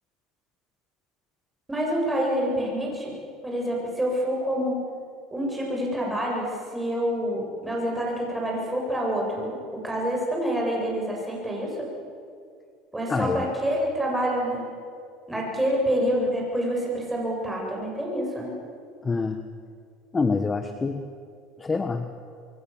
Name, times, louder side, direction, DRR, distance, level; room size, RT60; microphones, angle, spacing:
voice 1, 1.7-3.1 3.4-4.8 5.3-11.9 12.9-14.6 15.3-18.6, equal, 10° right, -2 dB, 8.0 m, -27 dB
voice 2, 13.1-13.5 19.0-19.5 20.1-21.1 21.6-22.2, left 4 dB, 20° left, 8 dB, 1.2 m, -26 dB
27.0 x 23.0 x 7.3 m, 2.3 s
supercardioid pair, 125°, 0 cm